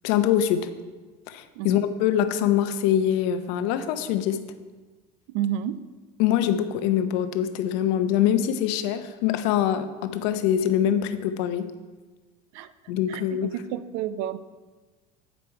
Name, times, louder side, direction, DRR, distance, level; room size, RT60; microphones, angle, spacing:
voice 1, 0.0-0.7 1.3-4.5 6.2-11.7 12.9-13.5, left 10 dB, 70° left, 10 dB, 0.7 m, -24 dB
voice 2, 5.3-5.8 12.5-12.7 13.1-14.4, right 11 dB, 70° right, 14 dB, 0.5 m, -30 dB
8.5 x 5.1 x 4.6 m, 1.3 s
supercardioid pair, 90°, 20 cm